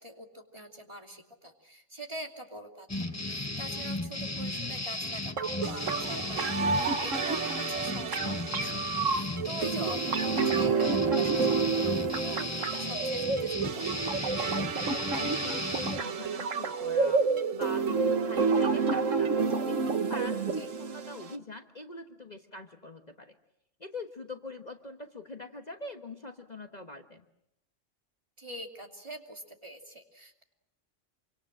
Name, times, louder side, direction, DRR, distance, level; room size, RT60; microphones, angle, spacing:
voice 1, 0.0-13.9 20.6-20.7 28.4-30.4, right 1 dB, 25° right, 3 dB, 2.8 m, -44 dB
sound 1, 2.9-16.0, left 2 dB, 15° left, 1.0 m, -35 dB
sound 2, 5.4-21.4, right 5 dB, 85° right, 1.6 m, -29 dB
voice 2, 14.4-17.2 17.5-23.4 23.8-27.3, left 2 dB, 35° left, 5 dB, 1.3 m, -43 dB
26.5 x 25.5 x 7.7 m, 0.82 s
omnidirectional pair, 1.3 m